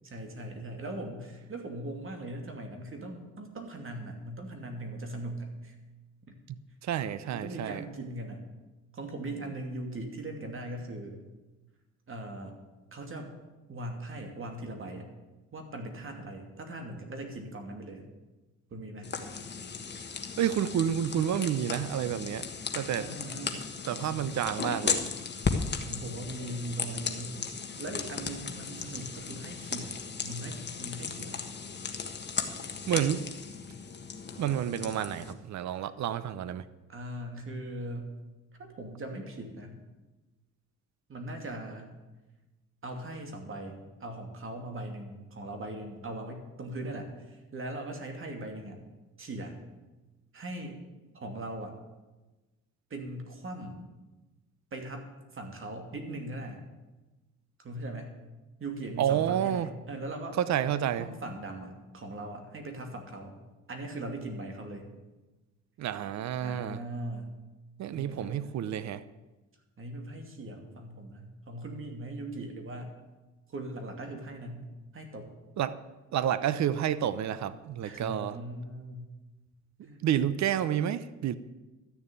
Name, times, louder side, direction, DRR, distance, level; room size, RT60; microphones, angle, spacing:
voice 1, 0.0-5.8 6.3-6.4 7.3-8.4 8.9-11.2 12.1-12.5 12.9-13.3 13.7-15.1 15.5-18.0 18.7-19.1 22.9-23.6 23.9-24.2 25.8-27.3 27.8-31.5 35.7-35.9 36.9-38.1 38.6-39.8 41.1-41.9 42.8-48.8 49.2-49.6 50.3-50.8 51.1-51.7 52.9-53.8 54.7-55.1 55.3-56.6 57.6-58.1 58.6-60.4 61.0-63.3 63.7-64.9 66.4-67.3 67.9-68.6 69.8-72.9 73.5-75.3 77.8-79.1 79.8-80.4, right 1 dB, 45° right, 2.6 m, -40 dB
voice 2, 6.8-7.8 20.4-22.5 22.7-23.1 23.9-25.0 32.9-33.2 34.4-36.6 59.0-59.7 60.4-61.1 65.8-66.8 67.8-69.0 75.6-75.8 76.1-78.3 80.0-81.4, right 10 dB, 65° right, 0.8 m, -29 dB
sound 1, 19.0-35.3, left 5 dB, 35° left, 1.4 m, -36 dB
13.0 x 6.9 x 9.1 m
cardioid pair, 90°, 30 cm